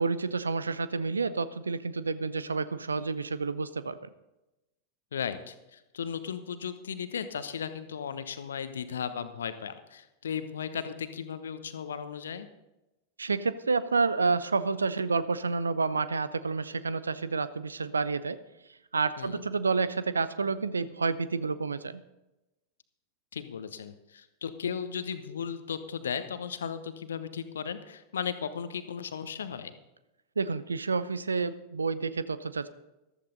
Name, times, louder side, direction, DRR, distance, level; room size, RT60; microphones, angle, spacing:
voice 1, 0.0-4.1 13.2-18.4 18.9-22.0 30.4-32.7, right 4 dB, 75° right, 16 dB, 0.6 m, -29 dB
voice 2, 5.1-12.5 19.2-19.5 23.3-29.7, left 7 dB, 65° left, 11 dB, 1.0 m, -36 dB
14.0 x 13.0 x 3.9 m, 0.97 s
figure-of-eight pair, 90°, 0 cm